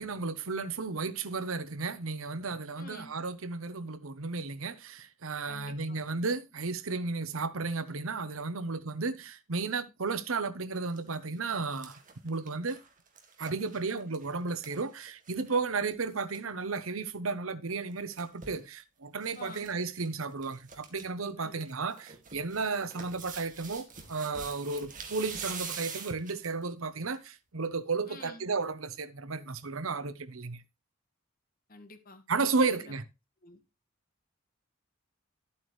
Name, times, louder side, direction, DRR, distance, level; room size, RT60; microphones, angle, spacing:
voice 1, 0.0-12.0 12.2-12.8 13.4-30.6 32.3-33.0, right 4 dB, 85° right, 0.9 m, -33 dB
voice 2, 2.8-3.1 5.5-6.0 19.4-19.7 21.4-21.5 28.0-28.5 31.7-32.9 33.4-33.6, left 2 dB, 45° left, 1.7 m, -49 dB
sound 1, 10.7-11.0 11.4-15.6 15.9-16.0 16.2-16.4 17.7-18.6 19.2-19.7 20.0-20.1 20.4-21.0 21.4-26.6 27.1-27.2, right 6 dB, 40° right, 2.1 m, -45 dB
11.5 x 8.4 x 3.2 m
head